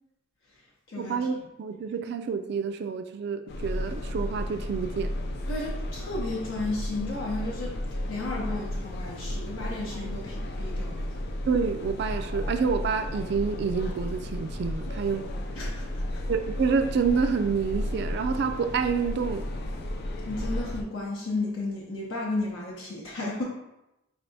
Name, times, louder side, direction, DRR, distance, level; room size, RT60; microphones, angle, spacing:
voice 1, 1.0-5.1 11.5-15.3 16.3-19.4, right 5 dB, 50° right, 7 dB, 0.3 m, -28 dB
sound 1, 3.5-20.8, left 1 dB, 50° left, 0.4 m, -33 dB
voice 2, 5.5-7.8 8.1-11.3 15.5-16.2 20.2-23.4, left 2 dB, 75° left, -4 dB, 0.7 m, -33 dB
4.6 x 3.3 x 2.7 m, 0.91 s
head